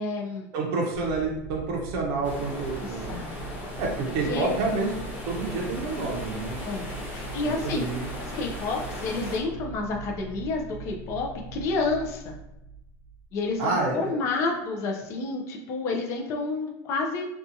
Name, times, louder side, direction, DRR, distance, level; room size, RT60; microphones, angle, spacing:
voice 1, 0.0-0.5 2.8-3.5 4.3-4.6 6.6-6.8 7.1-7.9 8.2-12.3 13.3-17.2, left 3 dB, 35° left, 1 dB, 0.4 m, -30 dB
voice 2, 0.5-3.2 3.8-4.9 5.3-7.1 7.4-8.1 13.6-14.2, right 3 dB, 50° right, -1 dB, 0.6 m, -29 dB
sound 1, 0.9-13.9, right 2 dB, 80° left, 1.0 m, -41 dB
sound 2, 2.2-9.4, equal, 15° left, 1.1 m, -38 dB
2.7 x 2.3 x 2.5 m, 0.87 s
supercardioid pair, 160°, 9 cm